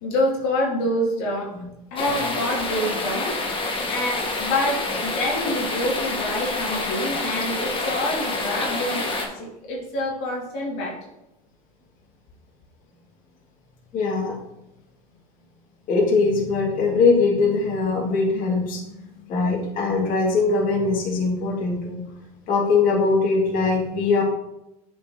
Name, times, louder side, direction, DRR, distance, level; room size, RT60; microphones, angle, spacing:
voice 1, 0.0-1.5 1.9-3.4 3.9-11.1, left 1 dB, 65° left, -2 dB, 1.9 m, -27 dB
sound 1, 2.0-9.3, left 2 dB, 25° left, 1.4 m, -27 dB
voice 2, 13.9-14.3 15.9-19.0 19.3-22.0 22.5-24.2, left 4 dB, 45° left, -3 dB, 1.9 m, -21 dB
7.9 x 4.5 x 2.7 m, 0.89 s
supercardioid pair, 100°, 19 cm